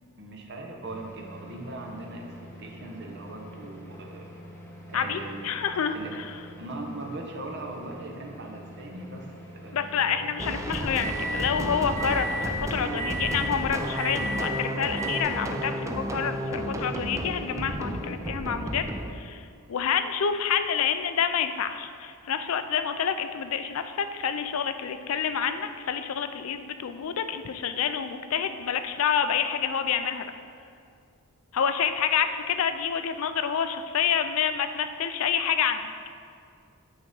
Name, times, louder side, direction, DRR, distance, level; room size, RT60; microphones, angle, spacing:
voice 1, 0.2-4.3 4.9-5.6 5.9-6.2 6.6-10.2, right 2 dB, 50° right, 1 dB, 0.9 m, -40 dB
sound 1, 0.8-11.5 12.0-12.5 13.0-13.5 14.0-14.5 15.0-15.2, right 1 dB, 10° left, 0.8 m, -39 dB
voice 2, 4.9-6.3 9.7-30.2 31.5-35.9, left 7 dB, 70° left, 9 dB, 0.4 m, -28 dB
sound 2, 10.4-19.1, right 1 dB, 15° right, 0.4 m, -32 dB
8.6 x 3.6 x 5.4 m, 2.4 s
head